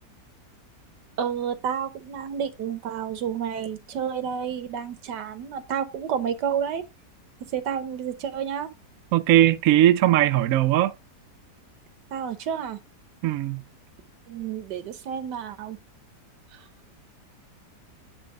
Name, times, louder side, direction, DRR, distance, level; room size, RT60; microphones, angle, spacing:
voice 1, 1.2-6.8 7.5-8.7 12.1-12.8 14.3-15.8 16.5-16.6, right 8 dB, 90° right, 1.6 m, -30 dB
voice 2, 9.1-10.9 13.2-13.6, right 13 dB, 65° right, 0.9 m, -19 dB
10.0 x 3.4 x 4.9 m
omnidirectional pair, 1.8 m